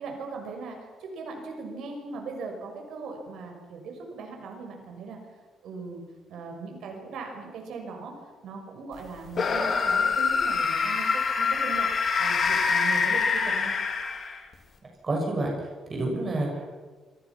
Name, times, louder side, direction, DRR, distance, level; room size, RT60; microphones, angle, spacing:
voice 1, 0.0-5.2 5.6-6.0 6.3-8.1 8.4-11.9 12.2-13.7, right 4 dB, 65° right, 2 dB, 6.1 m, -39 dB
sound 1, 9.3-14.5, left 5 dB, 40° left, 3.3 m, -25 dB
voice 2, 15.0-16.8, right 2 dB, 25° right, 0 dB, 6.5 m, -29 dB
29.0 x 24.0 x 6.1 m, 1.4 s
cardioid pair, 175°, 0 cm